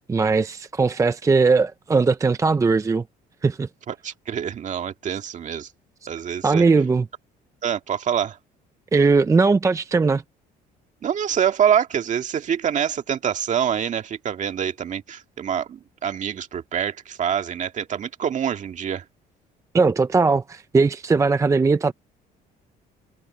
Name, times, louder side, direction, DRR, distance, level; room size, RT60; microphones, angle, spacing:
voice 1, 0.1-3.0 3.4-3.7 6.4-7.1 8.9-10.2 19.7-21.9, right 4 dB, 20° right, 0.5 m, -19 dB
voice 2, 3.9-5.7 6.1-6.6 7.6-8.4 11.0-19.0, right 8 dB, 45° right, 1.9 m, -25 dB
cardioid pair, 110°, 17 cm